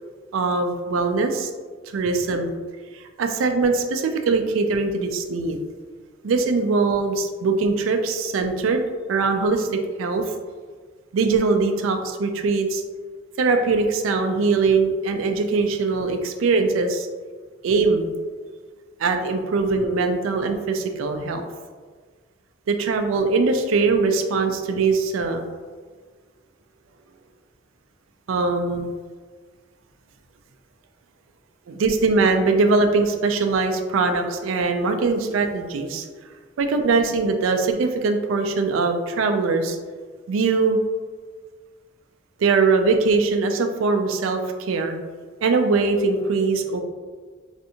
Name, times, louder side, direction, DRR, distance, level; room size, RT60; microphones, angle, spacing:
voice 1, 0.3-1.5 1.9-2.5 2.9-5.6 6.2-8.8 9.1-10.3 11.1-12.8 13.4-17.1 17.6-18.1 19.0-21.4 22.7-25.4 28.3-28.9 31.7-36.0 36.6-39.8 40.3-40.8 42.4-45.0 45.4-46.8, right 4 dB, 80° right, 6 dB, 0.4 m, -21 dB
3.2 x 2.6 x 2.7 m, 1.5 s
head